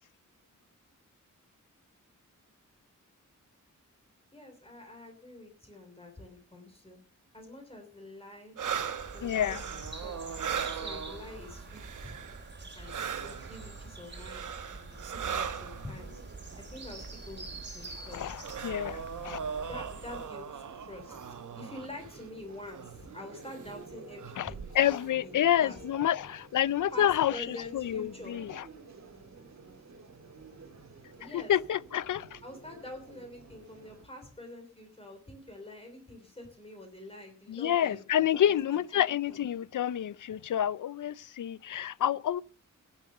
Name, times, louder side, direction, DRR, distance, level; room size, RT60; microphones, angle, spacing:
voice 1, 4.3-7.0 7.3-8.6 9.1-12.2 12.7-16.2 16.7-17.5 17.7-18.3 19.6-25.8 26.9-28.4 31.2-31.5 32.4-39.0 39.3-39.4, left 1 dB, 20° left, 3.1 m, -46 dB
sound 1, 8.6-12.5 12.8-16.0 17.0-17.1 17.5-22.2 22.7-23.0 23.5-23.7 24.2-25.0, right 7 dB, 75° right, 1.0 m, -39 dB
sound 2, 9.0-20.3, right 3 dB, 35° right, 3.1 m, -45 dB
voice 2, 9.2-9.6 18.1-19.4 24.4-28.6 31.3-32.4 37.5-42.4, left 11 dB, 75° left, 0.5 m, -29 dB
sound 3, 15.9-34.0, right 4 dB, 60° right, 2.5 m, -52 dB
16.5 x 7.3 x 6.7 m
wide cardioid pair, 170°, 31 cm